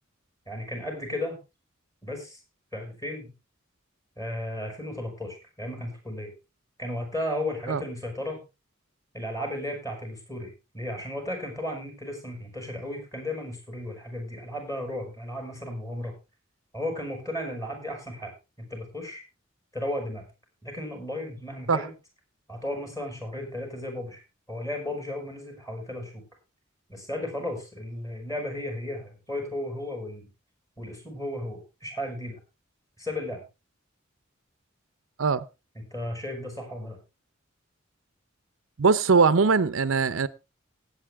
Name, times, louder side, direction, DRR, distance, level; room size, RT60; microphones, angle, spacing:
voice 1, 0.5-1.4 2.0-2.4 2.7-3.3 4.2-6.3 6.8-8.4 9.1-16.1 16.7-18.3 18.6-19.2 19.7-20.2 20.6-21.9 22.5-24.2 24.5-26.2 26.9-30.3 30.8-32.4 33.0-33.4 35.8-37.0, left 1 dB, 15° left, 5.8 m, -34 dB
voice 2, 38.8-40.3, right 5 dB, 85° right, 0.7 m, -21 dB
19.0 x 8.5 x 3.5 m
head